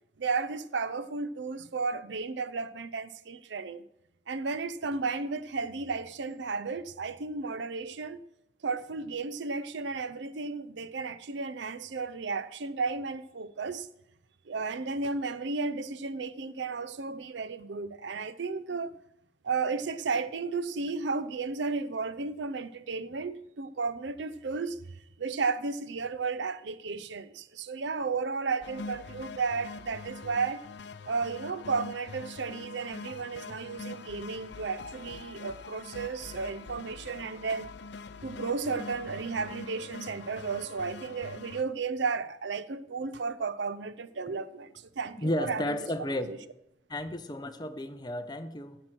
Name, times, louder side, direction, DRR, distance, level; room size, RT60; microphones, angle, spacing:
voice 1, 0.2-3.8 4.3-8.2 8.6-13.9 14.5-19.0 19.4-24.8 25.2-30.6 31.1-37.7 38.2-45.8 46.1-46.4, right 4 dB, 65° right, 0.5 m, -33 dB
sound 1, 28.6-41.6, left 4 dB, 60° left, 0.6 m, -44 dB
voice 2, 45.2-46.3 46.9-48.8, left 1 dB, 20° left, 0.7 m, -33 dB
15.5 x 6.0 x 6.1 m
head